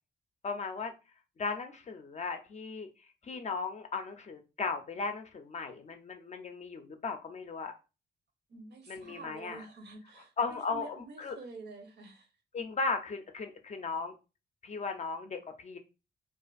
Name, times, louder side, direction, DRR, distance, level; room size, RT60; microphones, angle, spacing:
voice 1, 0.4-0.9 1.4-7.7 8.9-9.6 10.4-11.4 12.5-14.1 14.6-15.8, left 4 dB, 40° left, 0.4 m, -36 dB
voice 2, 8.5-12.3, right 3 dB, 65° right, 0.7 m, -48 dB
2.4 x 2.4 x 2.3 m
cardioid pair, 95°, 19 cm